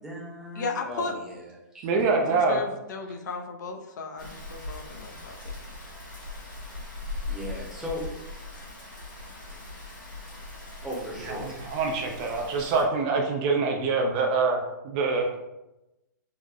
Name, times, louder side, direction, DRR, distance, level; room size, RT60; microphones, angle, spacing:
voice 1, 0.0-1.4 1.7-1.9 7.3-8.0 10.8-11.6, equal, 5° right, -5 dB, 0.7 m, -37 dB
voice 2, 0.6-1.2 2.3-5.3, left 4 dB, 65° left, 3 dB, 0.5 m, -35 dB
voice 3, 1.8-2.6 11.3-15.3, right 4 dB, 30° right, 2 dB, 0.3 m, -25 dB
Rain, 4.2-12.8, left 2 dB, 80° left, 1.4 m, -40 dB
3.7 x 2.0 x 3.4 m, 0.95 s
hypercardioid pair, 145°, 11 cm